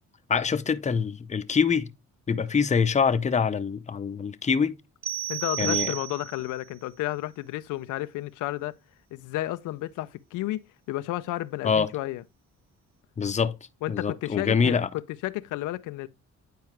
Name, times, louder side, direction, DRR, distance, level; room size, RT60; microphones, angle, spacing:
voice 1, 0.3-1.9 2.3-4.8 5.6-5.9 11.6-11.9 13.2-13.6 13.9-14.9, left 6 dB, 25° left, 0.6 m, -25 dB
sound 1, 5.0-6.6, right 14 dB, 50° right, 0.6 m, -32 dB
voice 2, 5.3-8.7 9.1-10.6 10.9-12.2 13.8-16.1, left 16 dB, 85° left, 0.5 m, -32 dB
9.2 x 4.6 x 3.1 m
cardioid pair, 90°, 30 cm